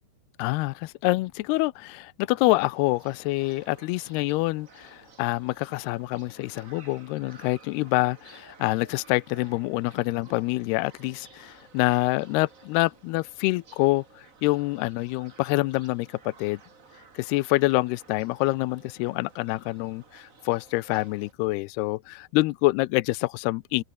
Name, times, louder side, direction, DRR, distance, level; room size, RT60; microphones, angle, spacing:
voice 1, 0.4-16.6 17.2-23.8, left 21 dB, 80° left, 2.5 m, -26 dB
sound 1, 2.4-21.3, right 5 dB, 40° right, 1.2 m, -54 dB
omnidirectional pair, 4.8 m